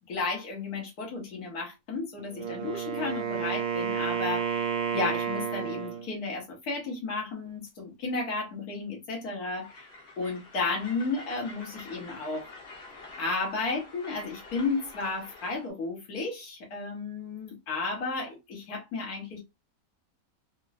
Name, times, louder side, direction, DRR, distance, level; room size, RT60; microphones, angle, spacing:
voice 1, 0.1-9.9 10.2-12.5 13.2-19.4, left 3 dB, 80° left, 1.6 m, -33 dB
Wind instrument woodwind instrument, 2.2-6.1, right 8 dB, 85° right, 1.2 m, -31 dB
Train, 9.6-15.7, left 3 dB, 45° left, 1.1 m, -47 dB
3.7 x 2.0 x 2.4 m
omnidirectional pair, 1.6 m